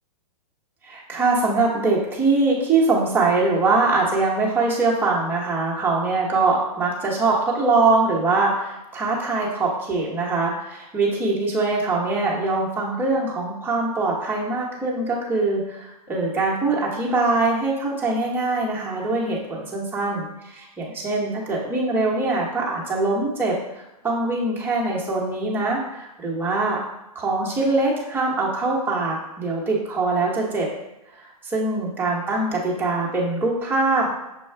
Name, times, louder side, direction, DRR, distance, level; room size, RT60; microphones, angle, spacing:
voice 1, 0.8-23.5 24.0-26.8 27.1-30.7 31.4-34.1, right 3 dB, 10° right, -4 dB, 1.0 m, -23 dB
6.5 x 2.3 x 3.4 m, 0.94 s
hypercardioid pair, 135°, 20 cm